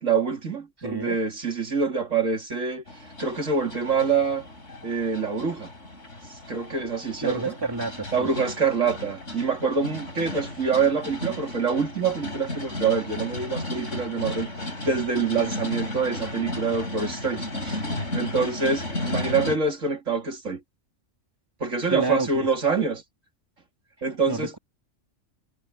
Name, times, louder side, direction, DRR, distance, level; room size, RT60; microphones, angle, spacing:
voice 1, 0.0-2.8 3.2-4.5 4.8-5.7 6.5-7.5 8.1-17.8 18.1-20.6 21.6-23.0 24.0-24.5, right 5 dB, 75° right, 3.3 m, -26 dB
voice 2, 0.8-1.2 7.2-8.3 21.9-22.5 24.3-24.6, right 3 dB, 15° right, 2.5 m, -29 dB
sound 1, 2.9-19.6, left 1 dB, 65° left, 5.1 m, -34 dB
omnidirectional pair, 1.3 m